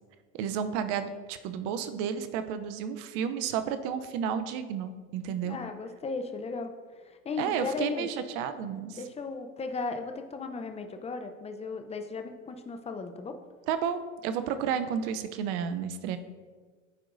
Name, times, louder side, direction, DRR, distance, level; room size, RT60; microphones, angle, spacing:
voice 1, 0.3-5.6 7.4-9.0 13.7-16.2, right 8 dB, 60° right, 10 dB, 0.7 m, -32 dB
voice 2, 5.4-8.1 8.9-13.4, left 4 dB, 15° left, 6 dB, 0.6 m, -36 dB
11.5 x 4.6 x 2.6 m, 1.4 s
hypercardioid pair, 90°, 38 cm